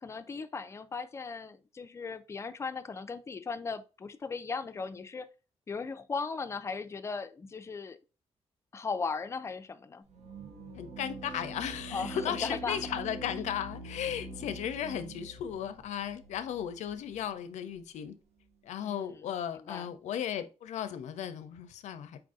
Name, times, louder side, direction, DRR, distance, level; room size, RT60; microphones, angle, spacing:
voice 1, 0.0-5.3 5.7-8.0 8.7-10.0 11.9-12.8 18.8-19.2 19.5-19.9, left 4 dB, 25° left, 0.4 m, -37 dB
sound 1, 10.1-17.3, right 2 dB, 70° right, 0.7 m, -44 dB
voice 2, 10.8-18.1 18.6-22.2, left 9 dB, 90° left, 0.4 m, -36 dB
4.6 x 2.5 x 3.6 m
wide cardioid pair, 145°, 12 cm